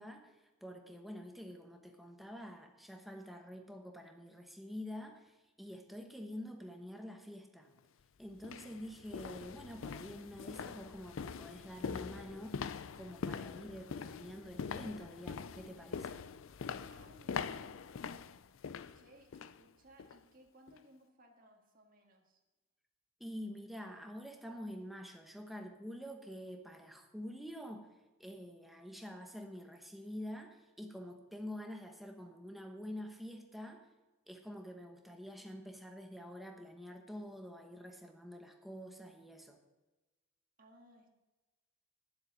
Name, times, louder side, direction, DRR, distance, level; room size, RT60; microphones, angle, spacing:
voice 1, 0.0-7.7 8.2-12.6 12.9-16.2 23.2-27.9 28.2-33.8 34.3-39.6, equal, ahead, 3 dB, 1.0 m, -47 dB
sound 1, 7.7-7.8 8.4-19.6 20.0-20.2 20.7-20.8, left 6 dB, 70° left, 0.4 m, -43 dB
voice 2, 16.9-18.4 18.9-22.4 40.6-41.1, right 1 dB, 40° right, 1 dB, 1.8 m, -62 dB
9.9 x 7.7 x 7.4 m, 1.1 s
head